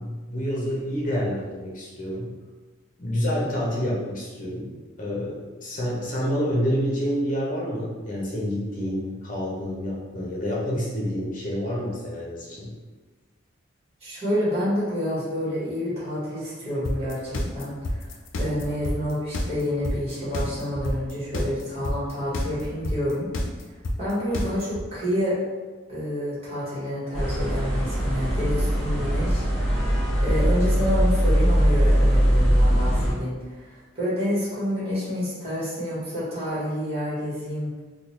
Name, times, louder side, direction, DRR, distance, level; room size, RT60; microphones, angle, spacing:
voice 1, 0.0-2.3 3.0-12.7, equal, 40° left, -5 dB, 0.9 m, -28 dB
voice 2, 14.0-18.1 18.4-23.3 24.0-25.4 25.9-29.9 30.2-37.7, equal, 30° right, -9 dB, 1.4 m, -28 dB
sound 1, 16.8-24.8, left 1 dB, 70° left, 0.4 m, -28 dB
sound 2, 27.1-33.1, equal, ahead, 1.3 m, -21 dB
3.8 x 2.3 x 3.0 m, 1.3 s
head